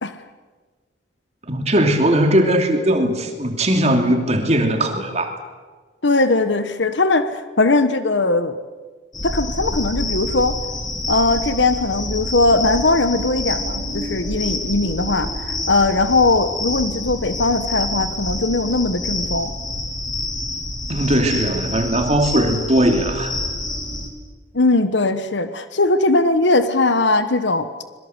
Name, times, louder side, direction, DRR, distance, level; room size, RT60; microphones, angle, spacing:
voice 1, 1.5-5.3 20.9-23.3, right 1 dB, 35° right, 4 dB, 2.8 m, -19 dB
voice 2, 6.0-8.5 9.2-10.5 11.1-19.5 24.5-27.7, left 2 dB, 70° left, 11 dB, 1.3 m, -19 dB
sound 1, 9.1-24.1, left 1 dB, 20° left, 3.0 m, -27 dB
26.0 x 23.0 x 8.1 m, 1.4 s
head